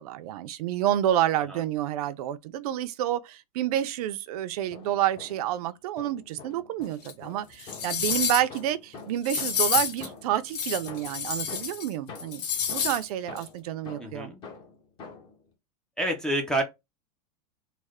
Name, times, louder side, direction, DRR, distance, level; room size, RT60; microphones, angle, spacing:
voice 1, 0.0-12.4 12.7-14.3, right 12 dB, 65° right, 0.4 m, -29 dB
sound 1, 4.5-5.6 6.0-10.5 10.9-15.4, left 4 dB, 25° left, 0.7 m, -46 dB
sound 2, 7.0-7.1 7.6-8.6 9.2-10.1 10.5-11.9 12.1-13.0 13.4-13.5, left 7 dB, 75° left, 1.3 m, -29 dB
voice 2, 14.0-14.4 16.0-16.6, right 1 dB, 5° left, 0.3 m, -28 dB
3.2 x 2.0 x 3.5 m
supercardioid pair, 165°, 21 cm